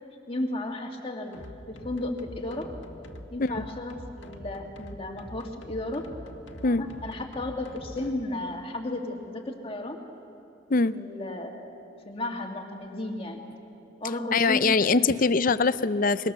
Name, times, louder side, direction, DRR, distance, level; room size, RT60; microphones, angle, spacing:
voice 1, 0.3-1.4 1.7-2.8 3.3-6.1 6.6-10.0 10.9-11.7 12.1-13.4 14.0-15.0, left 1 dB, 30° left, 2 dB, 2.1 m, -34 dB
sound 1, 1.3-8.1, left 1 dB, 70° left, 1.6 m, -44 dB
voice 2, 14.3-16.3, left 4 dB, 45° left, 14 dB, 0.6 m, -23 dB
25.0 x 23.0 x 6.9 m, 2.6 s
head